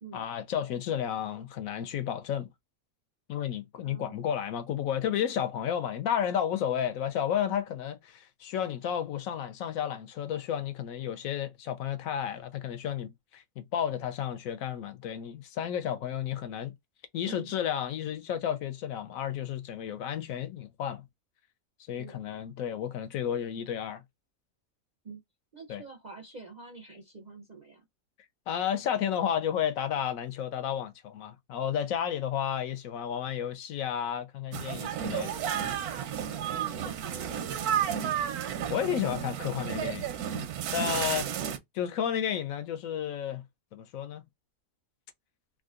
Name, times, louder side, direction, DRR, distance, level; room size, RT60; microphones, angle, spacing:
voice 1, 0.1-2.5 3.3-16.7 17.1-21.0 21.9-24.0 25.7-25.8 28.5-35.3 38.7-40.1 40.4-40.5 40.7-41.3 41.7-43.4 43.7-44.2, left 9 dB, 70° left, 1.0 m, -32 dB
voice 2, 3.8-4.3 17.2-17.5 22.0-22.2 25.0-25.2 25.5-27.8 36.2-38.0, right 4 dB, 55° right, 0.5 m, -47 dB
sound 1, 34.5-41.6, right 9 dB, 85° right, 1.1 m, -32 dB
3.7 x 2.3 x 2.4 m
omnidirectional pair, 1.5 m